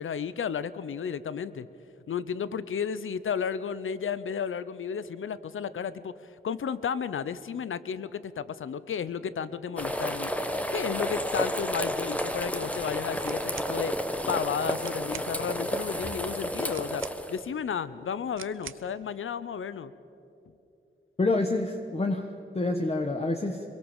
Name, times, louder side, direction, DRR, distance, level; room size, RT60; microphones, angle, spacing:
voice 1, 0.0-1.7 2.1-10.3 10.7-17.0 17.3-19.9, left 7 dB, 85° left, 16 dB, 0.7 m, -33 dB
sound 1, 9.7-17.4, equal, 5° left, 1.4 m, -31 dB
sound 2, 13.2-13.8 14.5-14.6 14.8-15.3 16.7-17.5 18.3-18.9, right 8 dB, 80° right, 0.7 m, -44 dB
voice 2, 21.2-23.6, left 2 dB, 30° left, 4 dB, 1.3 m, -28 dB
24.0 x 22.5 x 7.3 m, 2.8 s
cardioid pair, 65°, 20 cm